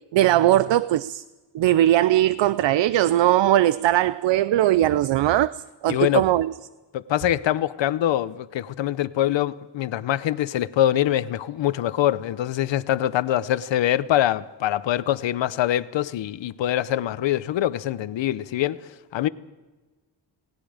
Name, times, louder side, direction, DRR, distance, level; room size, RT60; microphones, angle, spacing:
voice 1, 0.1-1.2 1.5-6.5, right 13 dB, 80° right, 0.6 m, -20 dB
voice 2, 5.9-6.3 6.9-18.8 19.1-19.3, left 12 dB, 80° left, 0.9 m, -24 dB
28.5 x 19.0 x 5.0 m
wide cardioid pair, 150°, 43 cm